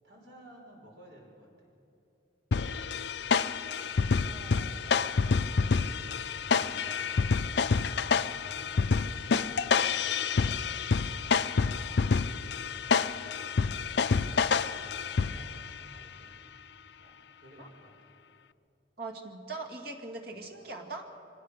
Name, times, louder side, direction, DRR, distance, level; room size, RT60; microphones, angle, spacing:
voice 1, 0.0-1.7 2.5-2.9 3.8-7.4 7.7-9.1 9.8-12.0 12.7-13.3 13.9-14.5 15.1-16.3 17.0-17.9 20.3-20.4, equal, 75° right, 0 dB, 5.6 m, -54 dB
sound 1, 2.5-15.7, left 5 dB, 70° left, 0.5 m, -28 dB
voice 2, 19.0-21.1, right 3 dB, 60° right, 4 dB, 2.2 m, -40 dB
25.0 x 17.5 x 6.6 m, 2.8 s
head